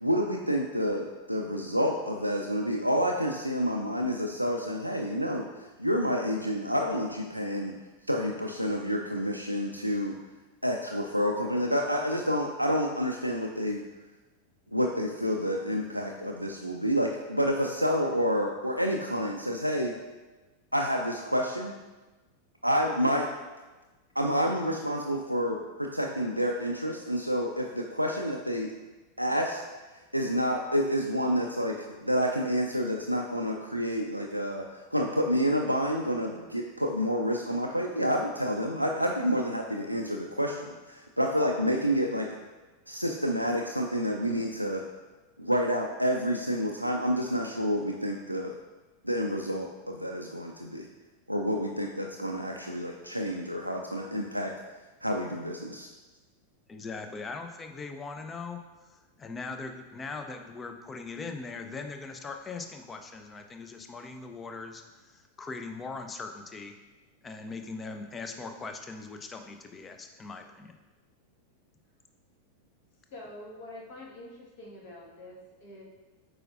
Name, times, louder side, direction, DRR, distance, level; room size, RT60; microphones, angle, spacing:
voice 1, 0.0-5.5 5.8-7.7 8.1-10.1 10.6-13.8 14.7-20.0 20.7-21.7 22.6-23.3 24.2-28.7 29.2-29.6 30.1-42.4 42.9-44.9 45.4-48.5 49.0-50.9 51.3-54.5 55.0-55.9, equal, 90° right, 1 dB, 0.4 m, -29 dB
voice 2, 56.7-58.6 58.9-66.7 67.2-70.7, left 4 dB, 20° left, 6 dB, 0.6 m, -40 dB
voice 3, 73.1-75.8, left 1 dB, 50° left, -3 dB, 1.5 m, -46 dB
7.7 x 4.8 x 2.5 m, 1.2 s
figure-of-eight pair, 90°, 0 cm